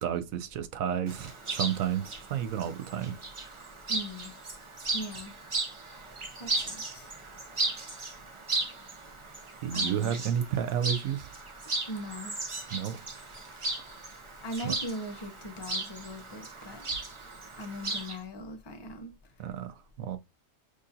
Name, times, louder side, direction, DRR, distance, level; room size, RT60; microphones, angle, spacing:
voice 1, 0.0-3.2 9.6-11.3 12.7-13.0 14.6-14.7 19.4-20.2, right 9 dB, 80° right, 1.0 m, -31 dB
Chirp tweet, 1.1-18.2, right 2 dB, 30° right, 0.6 m, -36 dB
voice 2, 3.9-4.3 4.9-5.3 6.4-7.1 9.7-10.1 11.9-12.3 14.4-16.9 17.6-19.1, equal, 25° left, 0.6 m, -39 dB
6.4 x 2.6 x 2.6 m
omnidirectional pair, 1.4 m